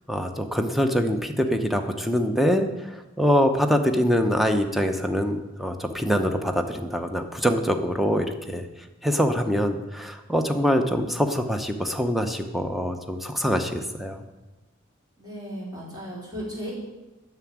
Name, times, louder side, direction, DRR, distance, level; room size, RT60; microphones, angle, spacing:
voice 1, 0.1-8.7 9.0-14.2, equal, ahead, 6 dB, 0.8 m, -24 dB
voice 2, 15.2-16.7, equal, 20° right, -7 dB, 4.7 m, -35 dB
9.6 x 7.0 x 8.8 m, 1.1 s
head